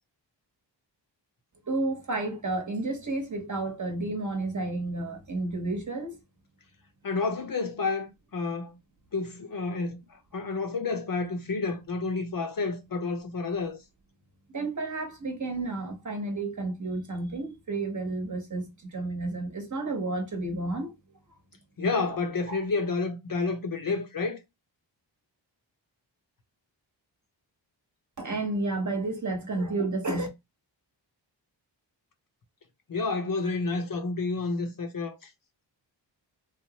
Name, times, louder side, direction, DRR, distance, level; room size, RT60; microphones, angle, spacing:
voice 1, 1.7-6.2 14.5-20.9 22.1-22.2 22.5-22.6 28.2-30.3, right 2 dB, 40° right, 1.0 m, -31 dB
voice 2, 7.0-8.8 9.1-13.8 21.8-24.4 32.9-35.3, left 3 dB, 45° left, 0.7 m, -30 dB
3.1 x 2.0 x 2.8 m
cardioid pair, 70°, 46 cm